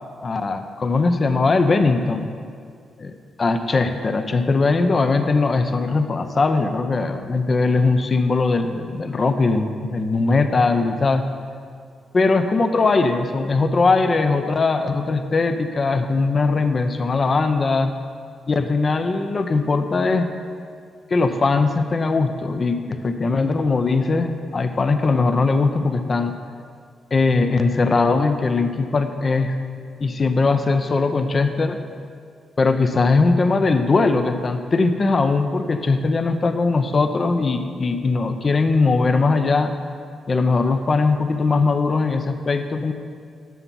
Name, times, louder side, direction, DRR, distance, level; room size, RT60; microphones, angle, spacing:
voice 1, 0.2-2.3 3.0-3.1 3.4-11.2 12.1-17.9 18.5-20.3 21.1-26.3 27.1-29.6 30.0-31.8 32.6-39.7 40.3-42.9, left 3 dB, 40° left, 7 dB, 0.6 m, -20 dB
9.4 x 7.0 x 5.5 m, 2.2 s
cardioid pair, 80°, 0 cm